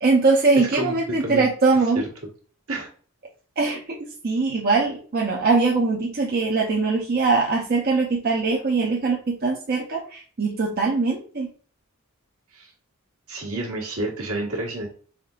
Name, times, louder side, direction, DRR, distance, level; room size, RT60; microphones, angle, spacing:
voice 1, 0.0-2.0 3.6-4.0 4.2-11.5, right 3 dB, 45° right, -2 dB, 0.5 m, -22 dB
voice 2, 0.6-1.5 2.7-2.9 12.5-12.7 13.3-14.9, right 1 dB, 70° right, -1 dB, 1.2 m, -29 dB
3.7 x 3.5 x 2.3 m, 0.42 s
head